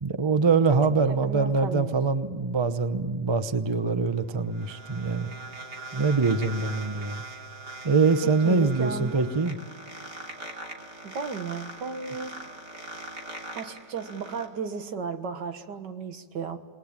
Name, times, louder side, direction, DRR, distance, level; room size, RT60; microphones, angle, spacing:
voice 1, 0.0-5.3 5.9-7.3 7.8-9.6, right 4 dB, 25° right, 11 dB, 0.6 m, -24 dB
voice 2, 0.9-1.9 8.2-9.3 11.0-12.4 13.6-16.6, right 5 dB, 85° right, 8 dB, 2.1 m, -34 dB
sound 1, 4.0-14.5, right 2 dB, 70° right, 3.6 m, -41 dB
27.5 x 21.0 x 8.8 m, 1.6 s
omnidirectional pair, 1.8 m